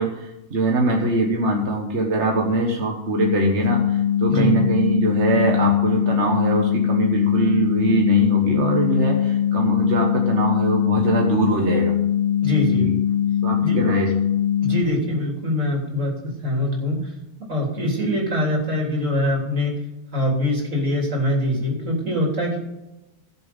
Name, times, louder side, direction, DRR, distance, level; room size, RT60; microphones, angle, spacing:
voice 1, 0.0-11.9 12.8-12.9 13.4-14.1, right 2 dB, 65° right, 0 dB, 1.7 m, -22 dB
sound 1, 3.2-14.8, left 10 dB, 70° left, 0.4 m, -21 dB
voice 2, 12.4-12.9 13.6-13.8 14.6-17.1 17.5-19.7 20.1-22.6, left 1 dB, 85° right, -1 dB, 3.8 m, -23 dB
16.5 x 7.0 x 5.3 m, 0.95 s
omnidirectional pair, 1.3 m